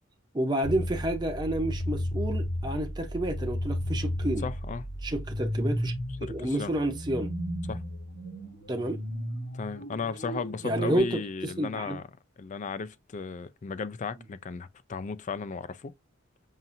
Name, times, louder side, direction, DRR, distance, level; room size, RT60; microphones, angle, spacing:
voice 1, 0.3-4.5 5.0-5.9 6.2-7.3 8.7-9.0 10.6-12.0, right 1 dB, 20° right, 0.7 m, -30 dB
sound 1, 0.6-11.0, equal, 75° left, 3.1 m, -34 dB
voice 2, 4.4-4.8 6.2-6.7 7.7-7.8 9.5-12.0 12.4-15.9, left 5 dB, 35° left, 0.4 m, -35 dB
5.6 x 2.6 x 2.5 m
head